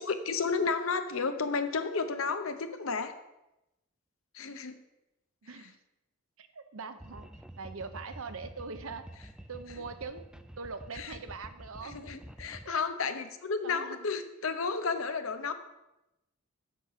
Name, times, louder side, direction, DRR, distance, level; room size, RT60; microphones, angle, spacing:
voice 1, 0.0-3.1 4.3-4.8 11.0-11.1 11.8-15.5, left 4 dB, 65° left, 9 dB, 0.8 m, -32 dB
voice 2, 5.4-5.8 6.4-7.3 7.6-9.1 9.5-12.2 12.6-12.8 13.6-14.2, right 4 dB, 65° right, 10 dB, 0.7 m, -42 dB
sound 1, 7.0-12.7, right 1 dB, 5° right, 0.3 m, -48 dB
7.6 x 6.6 x 5.6 m, 0.93 s
head